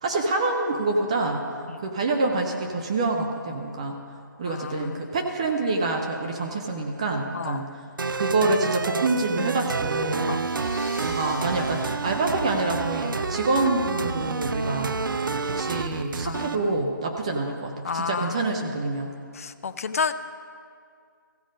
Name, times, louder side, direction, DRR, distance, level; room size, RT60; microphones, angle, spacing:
voice 1, 0.0-1.4 1.8-4.0 4.4-7.7 8.1-10.3 11.0-19.1, right 2 dB, 20° right, 2 dB, 0.5 m, -26 dB
voice 2, 4.5-5.1 7.3-7.7 10.3-10.5 16.2-16.8 17.8-18.5 19.3-20.1, left 5 dB, 45° left, 10 dB, 0.4 m, -31 dB
sound 1, 8.0-16.6, right 4 dB, 80° right, 0.5 m, -29 dB
sound 2, 10.0-13.3, left 1 dB, 5° left, 2.0 m, -43 dB
15.5 x 5.2 x 5.1 m, 2.3 s
hypercardioid pair, 170°, 11 cm